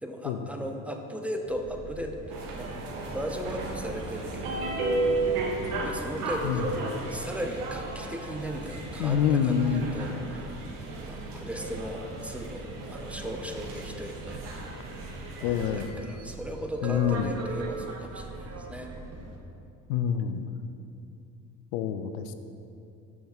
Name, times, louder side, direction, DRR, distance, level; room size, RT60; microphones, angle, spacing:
voice 1, 0.0-2.7 3.1-4.7 5.8-6.6 7.1-10.6 11.1-14.6 15.4-18.9, equal, 5° right, 3 dB, 0.5 m, -37 dB
sound 1, 1.5-19.4, right 3 dB, 35° right, 0.9 m, -42 dB
sound 2, 2.3-15.9, right 2 dB, 80° right, 0.9 m, -34 dB
voice 2, 9.0-9.9 15.4-15.9 16.8-17.3 19.9-20.5 21.7-22.3, left 8 dB, 70° left, 9 dB, 0.6 m, -26 dB
6.2 x 5.9 x 3.6 m, 2.8 s
hypercardioid pair, 60°, 45 cm